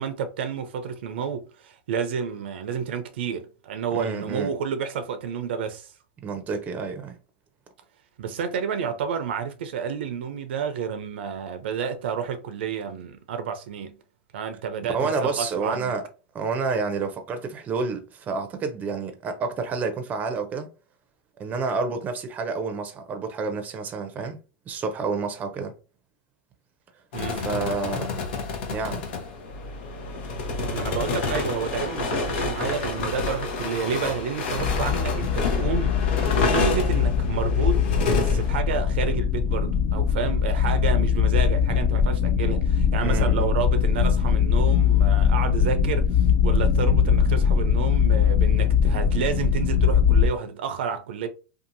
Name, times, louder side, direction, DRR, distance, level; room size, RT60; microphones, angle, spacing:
voice 1, 0.0-5.9 8.2-14.0 14.3-16.0 27.1-27.5 30.7-51.3, right 6 dB, 80° right, 0.5 m, -30 dB
voice 2, 3.9-4.5 6.2-7.2 14.9-16.0 16.3-20.7 21.4-24.4 24.7-25.7 27.3-28.2 28.7-29.0 43.0-43.4, right 4 dB, 30° right, 0.6 m, -29 dB
sound 1, 27.1-38.6, left 3 dB, 75° left, 0.9 m, -28 dB
sound 2, 34.6-50.3, left 7 dB, 45° left, 0.4 m, -21 dB
2.7 x 2.5 x 2.6 m
supercardioid pair, 120°, 6 cm